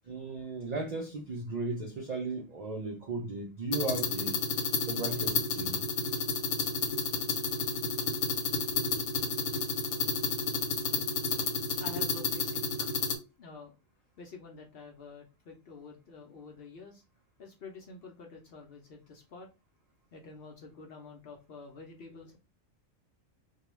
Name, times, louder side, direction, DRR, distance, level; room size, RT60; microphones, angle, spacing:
voice 1, 0.1-4.4 4.9-5.9, right 3 dB, 65° right, 0.4 m, -36 dB
sound 1, 3.7-13.2, left 4 dB, 85° left, 1.0 m, -31 dB
voice 2, 11.8-12.6 13.4-13.8 14.2-17.0 17.4-19.5 20.1-22.4, left 4 dB, 60° left, 0.7 m, -48 dB
2.3 x 2.2 x 3.0 m
omnidirectional pair, 1.4 m